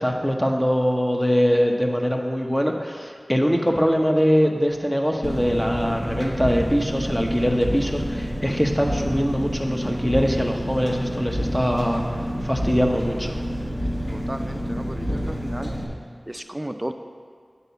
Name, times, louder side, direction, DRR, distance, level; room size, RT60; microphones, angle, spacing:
voice 1, 0.0-12.1 12.4-13.4, equal, 10° left, 2 dB, 0.8 m, -22 dB
Engine, 5.2-15.8, equal, 45° left, 1.3 m, -28 dB
voice 2, 14.1-15.7 16.3-16.9, right 1 dB, 20° right, 7 dB, 0.5 m, -34 dB
8.8 x 4.1 x 6.8 m, 2.1 s
wide cardioid pair, 50°, 0 cm